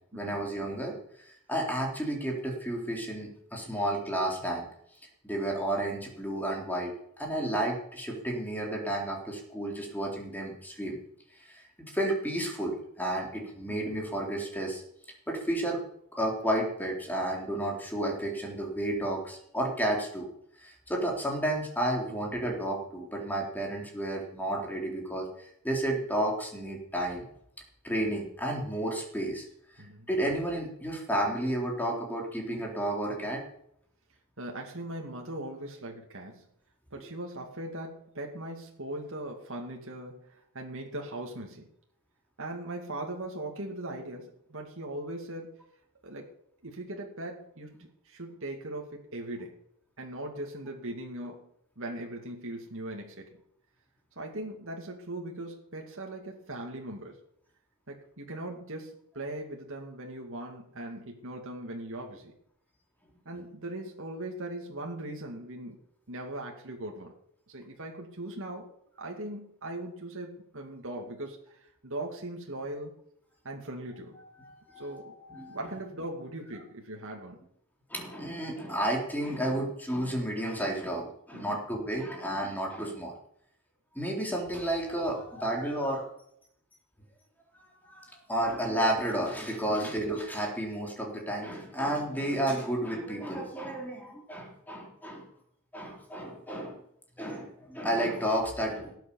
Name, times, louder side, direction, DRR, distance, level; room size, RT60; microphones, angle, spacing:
voice 1, 0.1-4.7 5.2-6.9 7.2-11.0 11.5-14.8 15.3-15.8 16.1-20.3 20.6-27.2 27.8-29.4 30.1-33.4 74.4-75.6 77.9-83.1 83.9-86.1 87.5-95.3 95.7-96.8 97.2-98.9, right 1 dB, 10° left, 0 dB, 3.9 m, -32 dB
voice 2, 29.8-30.1 34.4-36.5 36.9-41.7 42.4-45.6 46.0-46.3 46.6-49.6 50.0-51.5 51.8-53.3 54.2-57.1 57.9-62.3 63.2-65.8 66.1-67.1 67.5-73.0 73.4-74.2 74.8-75.1 75.5-77.4 81.3-81.6 89.7-89.9, right 1 dB, 60° right, 1 dB, 2.5 m, -39 dB
18.5 x 8.7 x 7.2 m, 0.71 s
head